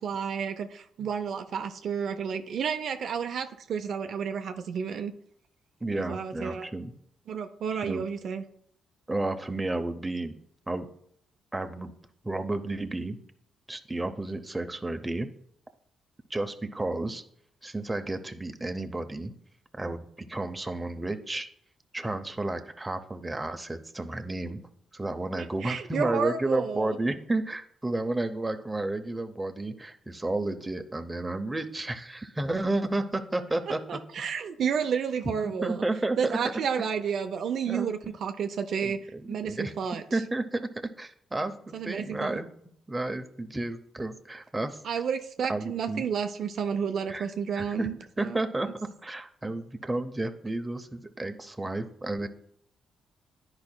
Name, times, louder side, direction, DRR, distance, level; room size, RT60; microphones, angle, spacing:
voice 1, 0.0-5.1 5.9-6.7 7.3-8.4 25.4-27.0 33.9-35.8 36.2-40.0 41.7-42.4 44.8-48.4, right 7 dB, 70° right, 7 dB, 0.5 m, -31 dB
voice 2, 5.8-6.9 7.8-8.0 9.1-10.3 10.7-10.9 11.5-11.9 12.2-13.2 13.7-15.3 16.3-17.2 17.6-19.3 19.7-21.5 21.9-24.6 24.9-34.0 35.4-36.4 37.7-37.9 38.8-39.7 40.1-40.7 41.0-42.5 42.9-44.8 45.5-46.0 47.1-47.3 47.5-47.9 48.2-52.3, right 2 dB, 20° right, 7 dB, 0.7 m, -32 dB
10.5 x 4.8 x 2.2 m, 0.67 s
supercardioid pair, 60°, 0 cm